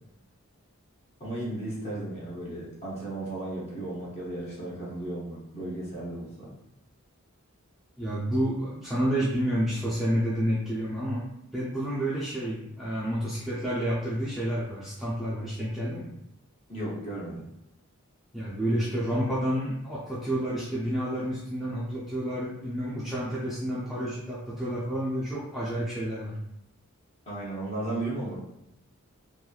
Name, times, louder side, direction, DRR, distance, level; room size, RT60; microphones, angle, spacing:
voice 1, 1.2-6.5 16.7-17.4 27.3-28.4, right 1 dB, 30° left, -6 dB, 0.7 m, -35 dB
voice 2, 8.0-11.2 11.5-16.1 18.3-26.4, equal, ahead, -9 dB, 0.4 m, -29 dB
2.9 x 2.2 x 2.3 m, 0.81 s
head